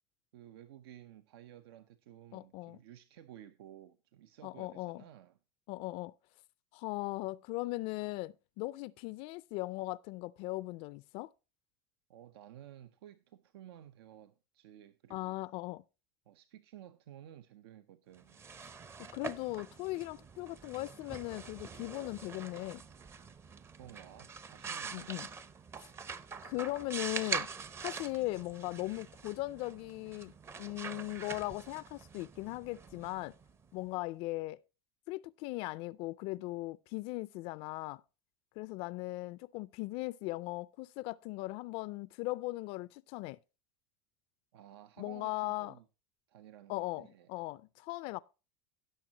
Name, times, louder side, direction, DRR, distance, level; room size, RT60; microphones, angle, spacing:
voice 1, 0.3-5.4 12.1-15.3 16.3-18.4 23.8-25.3 44.5-45.8 46.3-47.3, right 11 dB, 85° right, 0.7 m, -54 dB
voice 2, 2.3-2.8 4.4-5.0 5.7-6.1 6.7-11.3 15.1-15.8 19.0-22.8 24.9-25.3 26.4-27.5 27.8-30.3 30.6-33.3 33.7-34.6 35.1-38.0 38.6-43.4 45.0-45.7 46.7-48.2, left 20 dB, 50° left, 0.4 m, -38 dB
sound 1, 18.2-33.9, right 5 dB, 20° right, 0.6 m, -44 dB
17.0 x 6.5 x 2.8 m
supercardioid pair, 140°, 13 cm